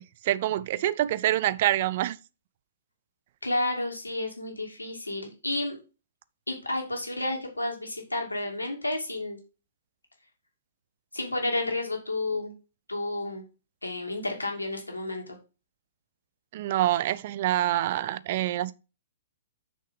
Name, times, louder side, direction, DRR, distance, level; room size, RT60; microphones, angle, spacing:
voice 1, 0.0-2.2 16.5-18.7, right 13 dB, 45° right, 0.5 m, -26 dB
voice 2, 3.4-5.8 6.5-9.4 11.1-12.5 12.9-13.4 13.8-15.4, left 2 dB, 85° left, 2.5 m, -31 dB
6.4 x 5.5 x 5.3 m
figure-of-eight pair, 115°, 0 cm